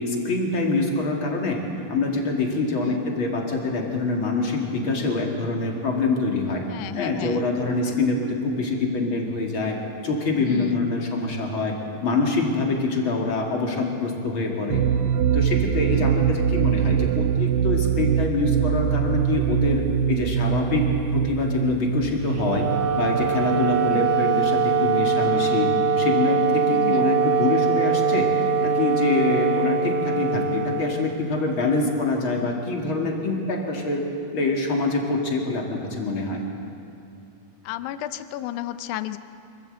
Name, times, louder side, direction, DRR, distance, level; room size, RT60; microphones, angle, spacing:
voice 1, 0.0-1.6 1.9-6.6 6.9-9.8 10.0-11.8 12.0-14.8 15.3-19.8 20.1-20.9 21.1-22.7 22.9-25.7 26.0-28.3 28.6-34.0 34.3-36.4, left 3 dB, 40° left, 0 dB, 2.6 m, -25 dB
voice 2, 6.7-7.5 7.8-7.9 10.4-10.9 15.9-16.2 23.9-24.1 26.7-27.1 30.5-30.7 37.6-39.2, left 14 dB, 80° left, 11 dB, 1.8 m, -34 dB
sound 1, 14.7-24.3, right 8 dB, 80° right, 2.2 m, -24 dB
Wind instrument woodwind instrument, 22.3-31.6, right 5 dB, 60° right, 1.7 m, -22 dB
25.5 x 14.5 x 8.0 m, 2.6 s
omnidirectional pair, 4.3 m